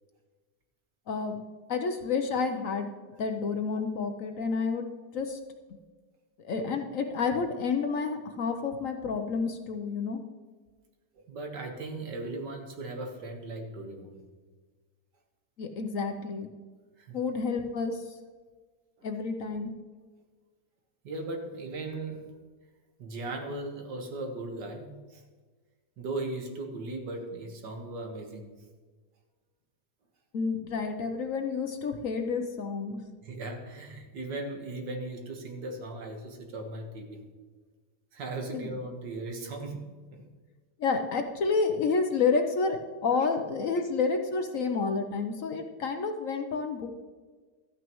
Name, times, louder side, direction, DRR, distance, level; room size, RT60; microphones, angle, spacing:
voice 1, 1.1-1.4 1.7-2.9 3.2-4.9 5.1-5.4 6.4-10.2 15.6-16.5 17.1-18.2 19.0-19.7 30.3-33.0 38.5-38.8 40.8-46.9, left 4 dB, 60° left, 6 dB, 1.0 m, -29 dB
voice 2, 11.1-14.2 17.0-17.2 19.0-19.1 21.0-22.4 23.0-25.2 26.0-28.5 33.2-37.2 38.1-39.9 40.1-40.3, right 2 dB, 75° right, 3 dB, 2.0 m, -38 dB
13.0 x 9.2 x 3.1 m, 1.4 s
omnidirectional pair, 1.9 m